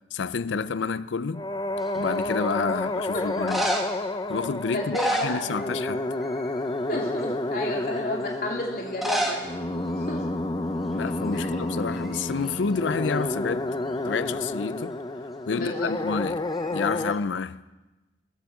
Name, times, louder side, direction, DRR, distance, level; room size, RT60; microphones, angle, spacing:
voice 1, 0.1-1.4 1.9-3.7 4.3-6.0 10.9-13.7 14.1-15.0 15.5-17.6, left 5 dB, 80° left, 0.5 m, -29 dB
sound 1, 1.3-17.1, left 2 dB, 20° left, 0.6 m, -30 dB
sound 2, 1.8-2.3 3.3-4.1 4.7-6.0 6.2-6.6 7.2-7.3 8.9-9.4 9.7-9.8 10.0-10.1 10.9-11.1 11.4-12.6 16.5-17.2, equal, ahead, 1.6 m, -30 dB
voice 2, 3.1-3.5 4.7-5.7 6.9-9.4 10.0-10.2 11.3-11.5 15.5-16.0, left 1 dB, 50° left, 3.0 m, -31 dB
21.5 x 8.2 x 7.2 m
head